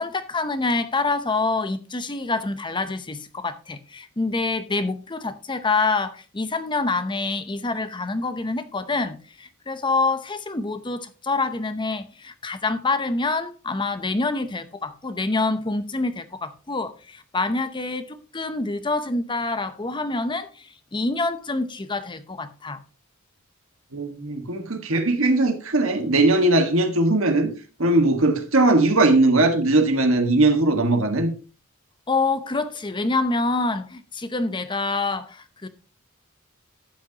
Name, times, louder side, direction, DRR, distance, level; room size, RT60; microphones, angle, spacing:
voice 1, 0.0-22.8 32.1-35.7, left 3 dB, 20° left, 0.7 m, -26 dB
voice 2, 23.9-27.5 27.8-31.3, right 2 dB, 65° right, 1.6 m, -19 dB
12.5 x 8.6 x 2.9 m
head